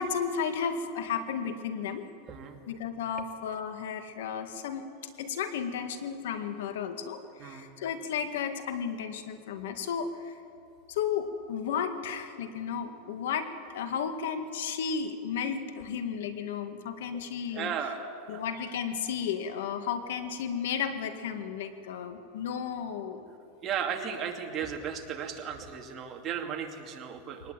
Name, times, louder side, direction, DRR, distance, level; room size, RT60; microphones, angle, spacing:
voice 1, 0.0-2.1 2.7-4.8 5.2-10.4 10.9-17.7 18.3-23.3, left 7 dB, 85° left, 8 dB, 2.0 m, -33 dB
voice 2, 2.3-2.6 7.4-7.7 17.1-17.2 17.5-18.4 23.6-27.5, right 7 dB, 30° right, 3 dB, 2.5 m, -35 dB
23.0 x 19.0 x 9.1 m, 2.6 s
supercardioid pair, 145°, 0 cm